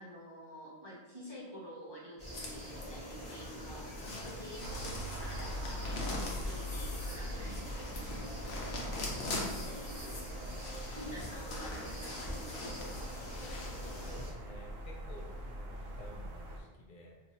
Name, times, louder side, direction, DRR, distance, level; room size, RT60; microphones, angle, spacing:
voice 1, 0.0-13.2, equal, 30° right, -6 dB, 0.6 m, -49 dB
sound 1, 2.2-14.3, equal, 5° right, 1.1 m, -45 dB
sound 2, 2.3-14.1, left 2 dB, 80° left, 1.0 m, -44 dB
sound 3, 4.6-16.6, equal, 70° right, 0.8 m, -43 dB
voice 2, 14.1-17.2, equal, 60° left, -2 dB, 0.7 m, -51 dB
2.8 x 2.5 x 4.1 m, 1.2 s
omnidirectional pair, 1.1 m